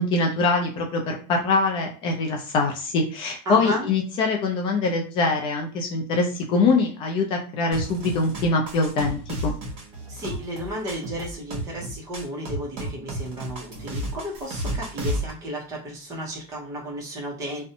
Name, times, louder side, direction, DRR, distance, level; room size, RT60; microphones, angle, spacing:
voice 1, 0.0-9.5, left 3 dB, 35° left, 2 dB, 0.4 m, -23 dB
voice 2, 3.5-3.9 10.1-17.7, equal, 25° right, -2 dB, 0.8 m, -33 dB
sound 1, 7.7-15.3, right 1 dB, 55° right, 1.1 m, -32 dB
2.5 x 2.1 x 2.7 m, 0.39 s
cardioid pair, 170°, 14 cm